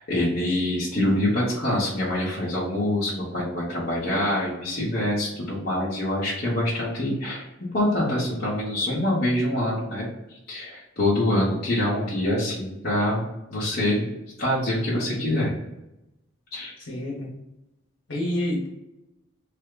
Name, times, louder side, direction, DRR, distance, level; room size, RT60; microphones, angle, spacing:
voice 1, 0.0-7.5 7.7-10.1 10.5-14.0 14.4-15.5 16.5-16.7, left 1 dB, 50° left, -7 dB, 0.9 m, -25 dB
voice 2, 16.8-17.3 18.1-18.7, left 1 dB, 70° left, -2 dB, 1.2 m, -28 dB
3.3 x 2.1 x 3.7 m, 0.92 s
head